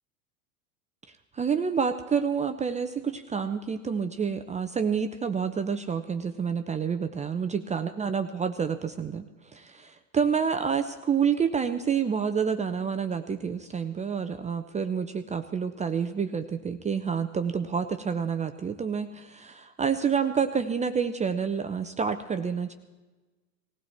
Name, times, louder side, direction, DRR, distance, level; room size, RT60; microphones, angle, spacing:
voice 1, 1.3-9.2 9.5-22.7, right 6 dB, 15° right, 8 dB, 0.7 m, -28 dB
18.5 x 16.0 x 4.5 m, 1.2 s
hypercardioid pair, 90°, 42 cm